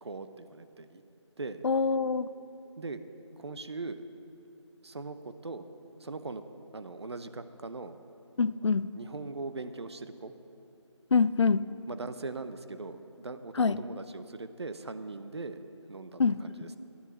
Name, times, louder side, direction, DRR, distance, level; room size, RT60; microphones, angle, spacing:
voice 1, 0.0-1.0 1.4-1.6 2.8-3.0 3.4-4.0 4.8-5.7 6.0-6.4 6.7-8.0 8.6-10.3 11.9-15.6 15.9-16.8, right 3 dB, 60° right, 10 dB, 0.7 m, -40 dB
voice 2, 1.6-2.3 8.4-8.9 11.1-11.7 13.6-13.8 16.2-16.4, left 5 dB, 65° left, 16 dB, 0.4 m, -25 dB
11.0 x 7.1 x 7.6 m, 2.7 s
figure-of-eight pair, 165°, 16 cm